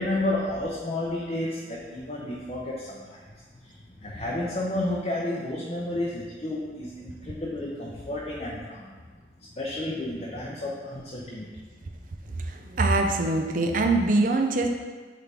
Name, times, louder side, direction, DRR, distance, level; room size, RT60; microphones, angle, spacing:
voice 1, 0.0-3.2 3.6-8.9 9.6-11.5, left 1 dB, 35° left, -5 dB, 0.7 m, -31 dB
voice 2, 12.5-14.7, right 2 dB, 50° right, 4 dB, 0.6 m, -23 dB
8.3 x 3.8 x 3.5 m, 1.5 s
head